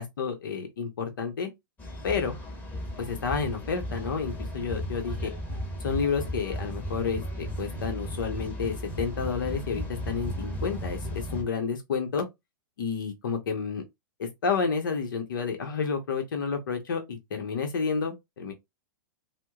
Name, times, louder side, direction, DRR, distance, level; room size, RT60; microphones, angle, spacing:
voice 1, 0.0-1.5 2.0-2.3 3.0-5.3 5.8-12.3 12.8-13.8 14.2-18.5, left 5 dB, 80° left, 0.9 m, -30 dB
sound 1, 1.8-11.4, equal, 15° left, 1.2 m, -35 dB
4.3 x 2.1 x 2.4 m
hypercardioid pair, 130°, 11 cm